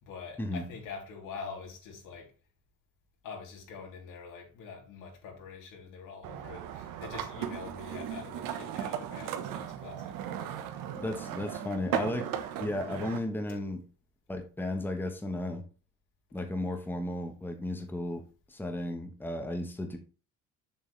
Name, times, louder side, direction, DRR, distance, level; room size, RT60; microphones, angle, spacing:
voice 1, 0.0-2.3 3.2-10.4 13.5-13.6, left 5 dB, 70° left, 3.3 m, -45 dB
sound 1, 6.2-13.2, right 10 dB, 80° right, 1.2 m, -37 dB
voice 2, 11.0-12.3 12.6-13.8 14.3-15.6 16.3-20.0, left 1 dB, 5° left, 1.2 m, -34 dB
7.4 x 6.5 x 3.3 m
cardioid pair, 140°, 32 cm